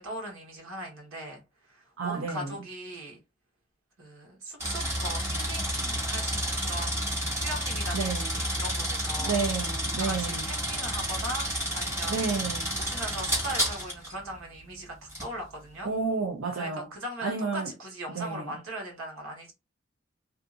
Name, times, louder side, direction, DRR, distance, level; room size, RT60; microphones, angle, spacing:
voice 1, 0.0-3.2 4.0-9.4 10.0-12.2 12.8-15.9 16.6-19.5, right 1 dB, 90° right, 1.3 m, -39 dB
voice 2, 2.0-2.6 7.9-8.3 9.2-10.5 12.1-12.8 15.8-16.9 17.2-17.7 18.1-18.5, right 4 dB, 70° right, 0.6 m, -31 dB
sound 1, 4.6-14.1 15.1-15.3, equal, 10° right, 1.1 m, -30 dB
2.7 x 2.5 x 2.5 m
head